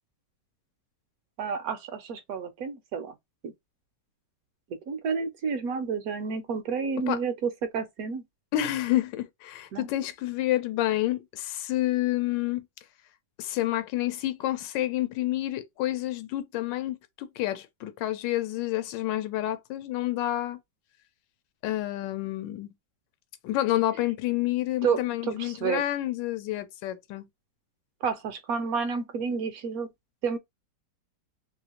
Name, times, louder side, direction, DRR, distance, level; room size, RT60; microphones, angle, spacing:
voice 1, 1.4-3.1 3.4-3.5 4.9-8.2 9.7-9.9 24.8-25.8 28.0-29.9 30.2-30.4, right 5 dB, 70° right, 0.9 m, -30 dB
voice 2, 8.5-12.6 13.4-20.6 21.6-22.7 23.4-27.3, left 14 dB, 85° left, 1.2 m, -29 dB
3.0 x 2.4 x 2.8 m
omnidirectional pair, 1.9 m